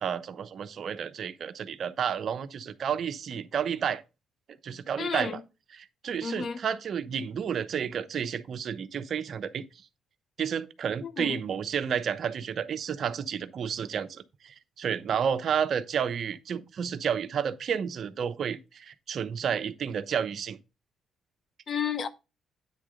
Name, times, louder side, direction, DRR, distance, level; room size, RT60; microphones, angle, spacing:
voice 1, 0.0-4.0 4.6-5.4 5.7-9.6 10.4-20.6, right 7 dB, 60° right, 0.8 m, -31 dB
voice 2, 5.0-5.4 6.2-6.6 11.0-11.4 21.7-22.1, left 6 dB, 50° left, 0.8 m, -32 dB
9.3 x 3.7 x 5.0 m
cardioid pair, 90°, 0 cm